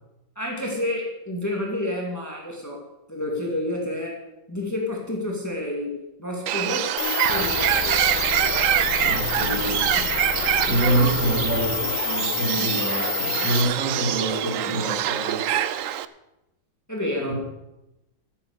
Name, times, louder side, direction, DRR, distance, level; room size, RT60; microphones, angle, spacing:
voice 1, 0.4-4.2 4.5-8.1 10.9-11.4 11.8-12.0 16.9-17.5, left 1 dB, 10° left, -1 dB, 2.5 m, -30 dB
Bird, 6.5-16.1, right 11 dB, 80° right, 0.7 m, -25 dB
sound 1, 7.0-13.6, left 10 dB, 60° left, 1.8 m, -28 dB
voice 2, 8.8-10.1 10.7-15.4, right 2 dB, 65° right, -2 dB, 4.4 m, -26 dB
14.0 x 8.8 x 6.8 m, 0.93 s
omnidirectional pair, 2.0 m